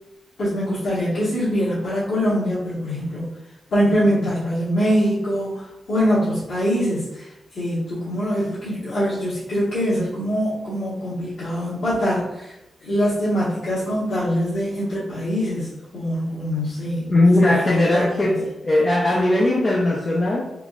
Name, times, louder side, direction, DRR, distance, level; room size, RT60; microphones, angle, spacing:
voice 1, 0.4-3.3 3.7-12.6 12.8-17.1 17.4-18.4, equal, 55° left, -10 dB, 1.3 m, -23 dB
voice 2, 17.1-20.5, left 1 dB, 25° left, -3 dB, 0.4 m, -18 dB
3.6 x 3.5 x 2.4 m, 0.90 s
wide cardioid pair, 180°, 0 cm